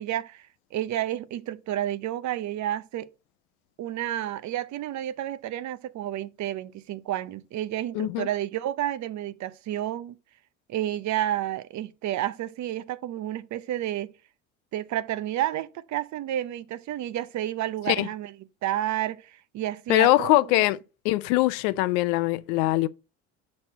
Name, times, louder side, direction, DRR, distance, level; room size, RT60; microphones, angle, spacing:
voice 1, 0.0-3.1 3.8-10.1 10.7-14.1 14.7-18.3 18.6-20.6, right 12 dB, 50° right, 0.7 m, -30 dB
voice 2, 7.9-8.3 17.9-18.1 19.9-20.8 21.0-22.9, left 17 dB, 75° left, 0.5 m, -22 dB
5.9 x 4.3 x 4.3 m
hypercardioid pair, 75°, 36 cm